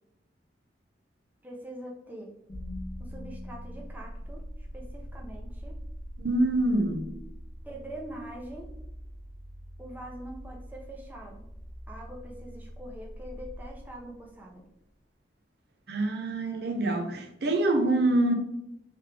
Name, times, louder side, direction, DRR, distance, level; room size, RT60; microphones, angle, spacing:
voice 1, 1.4-2.3 3.0-5.8 7.6-8.7 9.8-11.5 11.9-14.6, right 1 dB, 10° right, 0.6 m, -43 dB
sound 1, 2.5-14.6, equal, 35° left, 0.9 m, -43 dB
voice 2, 6.2-7.1 15.9-18.3, right 2 dB, 60° right, 0.6 m, -25 dB
3.5 x 3.3 x 3.3 m
head